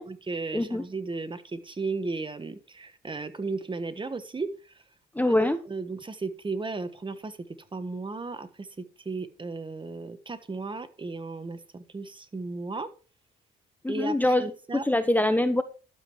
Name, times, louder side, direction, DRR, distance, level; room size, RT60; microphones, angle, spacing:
voice 1, 0.0-4.7 5.3-7.4 7.7-12.9 13.9-14.8, right 3 dB, 25° right, 11 dB, 1.4 m, -35 dB
voice 2, 0.5-0.8 5.1-5.6 13.8-14.5 14.8-15.6, left 1 dB, 10° left, 11 dB, 1.0 m, -23 dB
12.0 x 7.6 x 4.7 m, 0.35 s
cardioid pair, 90°, 20 cm